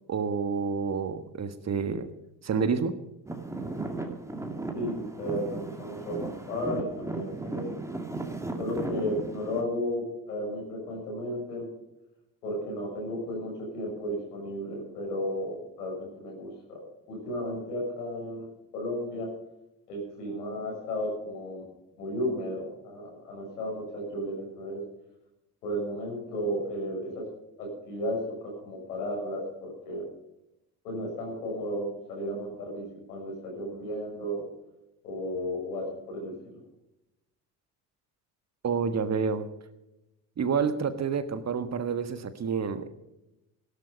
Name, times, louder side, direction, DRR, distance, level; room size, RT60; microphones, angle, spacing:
voice 1, 0.1-2.1 2.4-3.0 38.6-39.5 40.4-42.9, right 6 dB, 35° right, 11 dB, 1.5 m, -28 dB
Traffic noise roadway noise / Engine, 3.3-9.6, right 3 dB, 5° right, 2.5 m, -36 dB
voice 2, 4.7-7.9 8.6-11.7 12.4-18.5 18.7-19.3 19.9-21.6 22.0-24.8 25.6-27.3 27.6-30.1 30.8-34.5 35.0-36.6, equal, 75° left, -1 dB, 6.9 m, -34 dB
17.0 x 12.5 x 5.2 m, 0.91 s
figure-of-eight pair, 50°, 46 cm